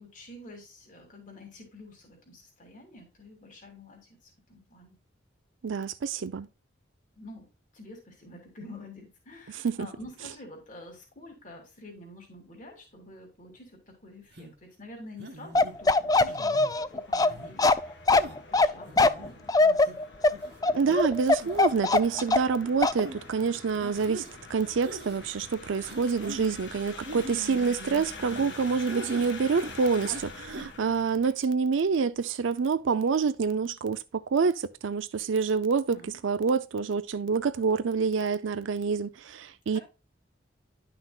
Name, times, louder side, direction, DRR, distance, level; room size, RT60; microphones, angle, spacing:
voice 1, 0.0-5.0 7.1-7.5 7.7-20.0 35.9-36.2 39.7-39.8, left 1 dB, 40° left, 2.8 m, -48 dB
voice 2, 5.6-6.5 9.5-9.9 20.7-36.0 36.2-39.8, right 5 dB, 75° right, 0.4 m, -27 dB
sound 1, 14.4-14.5 15.2-15.8 16.3-16.7 17.3-17.5 18.1-18.4 18.9-19.3 19.9-20.0 20.3-20.5 20.9-21.0 21.4-21.7 22.1-22.3 23.0-23.2 23.8-24.3 24.8-25.2 25.8-26.6 27.0-28.6 28.9-29.3 29.6-30.2 30.5-30.7, right 2 dB, 55° right, 1.1 m, -42 dB
Bark, 15.5-22.5 22.8-23.0, left 3 dB, 20° left, 0.3 m, -21 dB
sound 2, 15.7-31.3, left 3 dB, 65° left, 1.7 m, -46 dB
11.0 x 5.9 x 2.3 m
head